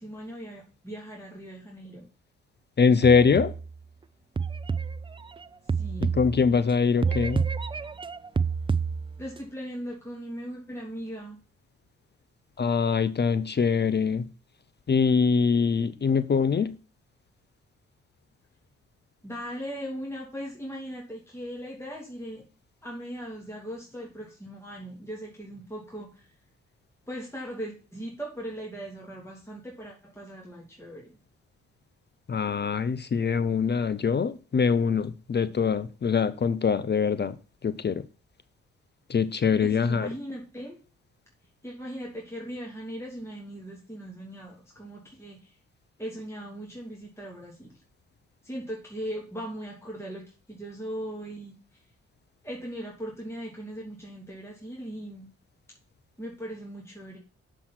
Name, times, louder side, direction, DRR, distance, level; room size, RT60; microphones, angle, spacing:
voice 1, 0.0-2.1 5.8-6.1 9.2-11.4 19.2-22.4 22.8-26.3 27.1-31.1 39.6-40.8 41.6-45.5 46.0-47.7 48.4-50.2 50.5-51.5 52.4-55.3 56.2-57.2, equal, 10° left, 3.0 m, -39 dB
voice 2, 2.8-3.5 6.0-7.4 12.6-14.3 14.9-16.7 32.3-37.4 37.6-38.0 39.1-40.1, left 5 dB, 35° left, 0.6 m, -23 dB
sound 1, 3.0-3.8 4.4-6.7 7.0-9.4, right 5 dB, 15° right, 0.4 m, -29 dB
7.2 x 4.5 x 5.9 m
hypercardioid pair, 45°, 31 cm